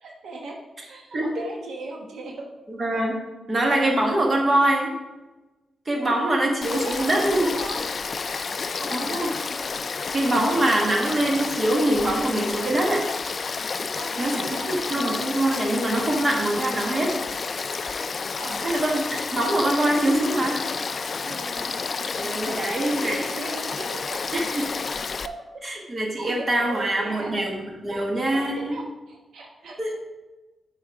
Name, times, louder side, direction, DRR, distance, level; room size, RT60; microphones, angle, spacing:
voice 1, 0.0-2.5 6.0-6.4 6.7-7.8 8.8-9.4 13.9-15.0 18.4-18.8 21.2-24.2 25.2-25.4 26.2-27.3 27.9-28.0 28.3-30.0, right 2 dB, 80° right, 1 dB, 1.3 m, -37 dB
voice 2, 2.7-3.2 3.5-4.9 5.9-7.6 8.9-9.3 10.1-13.1 14.2-17.2 18.6-20.6 22.0-23.2 24.3-24.7 25.6-28.8 29.8-30.0, right 1 dB, 30° right, 0 dB, 1.4 m, -24 dB
Frog / Stream, 6.6-25.3, left 4 dB, 40° left, 0.3 m, -30 dB
8.5 x 4.6 x 4.7 m, 1.1 s
wide cardioid pair, 135°, 0 cm